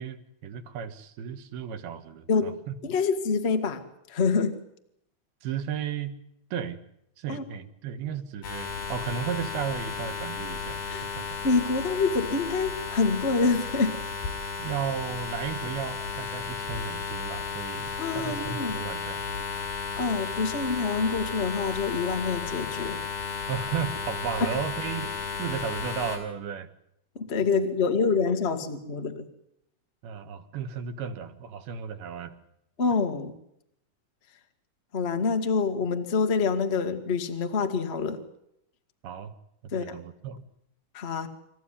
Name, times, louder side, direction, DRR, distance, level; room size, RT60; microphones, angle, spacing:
voice 1, 0.0-2.7 5.4-6.2 6.5-6.8 7.2-11.3 14.6-19.2 23.5-26.7 30.0-32.3 39.0-39.3 39.7-40.4, right 7 dB, 85° right, 8 dB, 3.4 m, -34 dB
voice 2, 2.3-4.6 7.3-7.4 10.9-11.1 11.4-14.0 18.0-18.9 19.5-19.7 20.0-23.0 27.1-29.2 32.8-33.3 34.9-38.2 39.7-39.9 40.9-41.3, left 4 dB, 35° left, 6 dB, 1.0 m, -26 dB
sound 1, 8.4-26.2, left 5 dB, 80° left, 6.9 m, -34 dB
27.5 x 15.0 x 10.0 m, 0.79 s
omnidirectional pair, 4.3 m